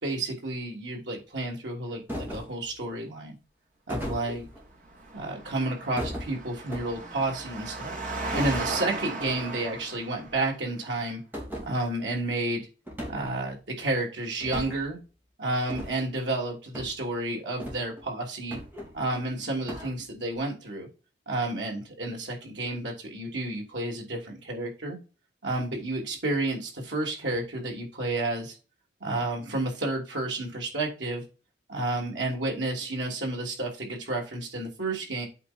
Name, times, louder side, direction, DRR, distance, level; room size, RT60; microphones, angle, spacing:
voice 1, 0.0-3.3 3.9-4.5 5.1-11.2 11.6-12.7 13.1-15.0 15.4-18.6 18.9-20.9 21.3-25.0 25.4-28.6 29.0-31.2 31.7-35.3, right 2 dB, 85° right, 0 dB, 3.1 m, -31 dB
sound 1, 2.1-2.6 3.9-4.6 6.0-7.2 8.3-8.7 9.1-9.4 9.6-9.7 10.2-10.4 11.3-11.7 12.9-13.4 14.4-14.9 15.7-16.0 16.7-16.9 17.6-18.0 18.5-19.2 19.7-19.9, equal, 10° right, 3.0 m, -37 dB
Engine, 4.8-10.5, right 3 dB, 45° right, 2.5 m, -36 dB
8.3 x 5.0 x 4.4 m, 0.33 s
head